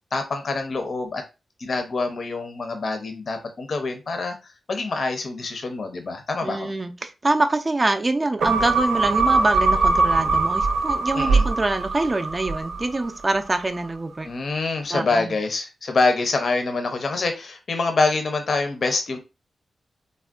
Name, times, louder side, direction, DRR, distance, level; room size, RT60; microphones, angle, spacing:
voice 1, 0.1-1.2 1.6-4.4 4.7-6.7 11.1-11.4 14.2-19.2, left 3 dB, 55° left, 0.5 m, -25 dB
voice 2, 6.4-14.3 14.9-15.3, right 2 dB, 25° right, 0.4 m, -25 dB
sound 1, 8.4-13.1 13.5-13.6, right 3 dB, 85° right, 0.6 m, -21 dB
3.5 x 2.1 x 2.4 m
cardioid pair, 90°, 0 cm